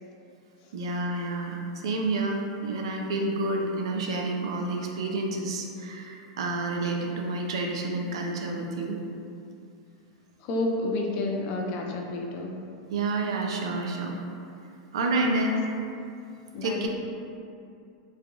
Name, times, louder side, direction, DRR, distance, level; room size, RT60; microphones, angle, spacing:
voice 1, 0.7-9.0 12.9-14.1 14.9-15.7 16.6-16.9, right 2 dB, 80° right, 1 dB, 0.4 m, -29 dB
voice 2, 10.4-12.5 16.5-16.9, left 2 dB, 50° left, 1 dB, 0.4 m, -30 dB
3.2 x 2.5 x 2.3 m, 2.5 s
supercardioid pair, 130°, 3 cm